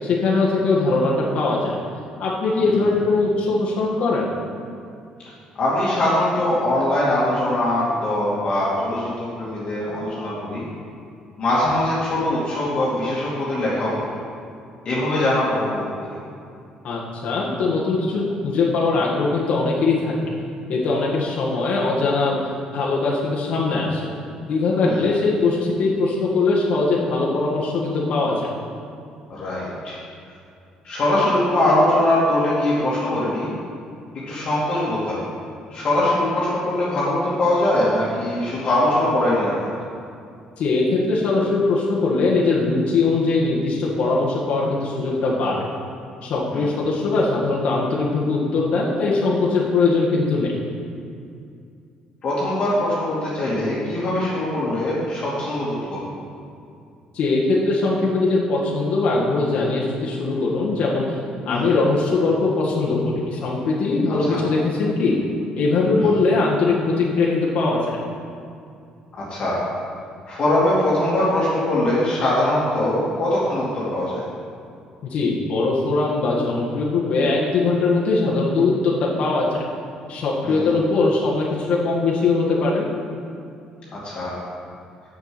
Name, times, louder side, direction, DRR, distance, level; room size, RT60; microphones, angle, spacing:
voice 1, 0.0-1.8 2.2-4.3 16.8-20.3 20.7-22.4 22.7-24.1 24.4-28.5 40.6-45.7 46.2-50.5 57.1-61.2 61.5-65.2 65.6-68.0 75.0-79.6 80.1-82.9, left 3 dB, 60° left, -5 dB, 1.8 m, -21 dB
voice 2, 5.5-10.7 11.4-14.1 14.8-16.1 24.8-25.0 29.4-30.0 30.8-33.5 34.3-35.2 35.7-39.6 46.5-46.7 52.2-56.1 61.5-61.7 64.3-64.4 66.0-66.1 69.1-69.6 70.3-74.2 80.4-80.7 83.9-84.4, left 1 dB, 45° left, -8 dB, 2.4 m, -22 dB
7.0 x 6.9 x 7.8 m, 2.4 s
cardioid pair, 130°, 2 cm